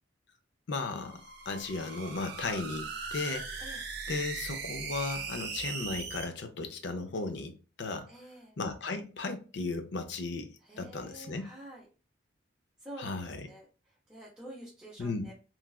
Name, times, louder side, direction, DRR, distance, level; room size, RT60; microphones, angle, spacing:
voice 1, 0.7-3.8 4.1-8.1 8.6-11.5 13.0-13.5 15.0-15.3, left 3 dB, 65° left, 0.5 m, -36 dB
sound 1, 0.8-6.2, right 5 dB, 55° right, 0.6 m, -39 dB
voice 2, 8.1-8.5 10.6-11.9 12.8-15.3, right 1 dB, 5° right, 0.6 m, -48 dB
3.1 x 2.3 x 2.3 m
head